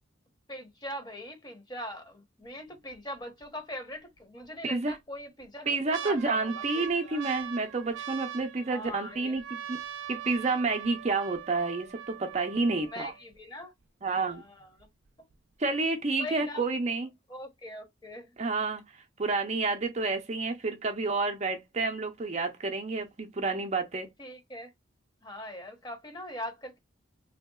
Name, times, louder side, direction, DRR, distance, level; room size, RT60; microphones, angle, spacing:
voice 1, 0.5-7.2 8.7-9.3 12.8-13.7 14.2-14.9 16.2-16.6 17.3-18.3 24.2-24.7 25.2-26.8, left 1 dB, 20° left, 0.8 m, -41 dB
sound 1, 2.4-2.9 3.4-3.5 4.4-4.9 5.4-13.4 14.1-14.2 14.3-14.8 15.3-15.4, right 10 dB, 85° right, 0.4 m, -42 dB
voice 2, 4.6-5.0 5.7-9.8 10.1-13.1 14.0-14.4 15.6-17.1 18.4-18.8 19.2-24.1, right 3 dB, 35° right, 0.5 m, -29 dB
3.4 x 2.8 x 2.3 m
head